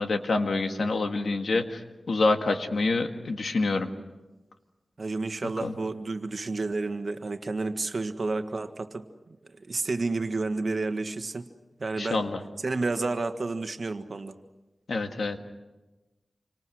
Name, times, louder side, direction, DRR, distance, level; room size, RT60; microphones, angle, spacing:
voice 1, 0.0-1.8 2.1-3.9 5.6-5.7 12.0-12.4 14.9-15.4, left 3 dB, 85° left, 5 dB, 2.0 m, -26 dB
voice 2, 5.0-9.1 9.4-11.5 11.8-12.3 12.6-14.3, right 3 dB, 55° right, 8 dB, 1.6 m, -30 dB
28.5 x 25.5 x 6.4 m, 1.1 s
wide cardioid pair, 80°, 0 cm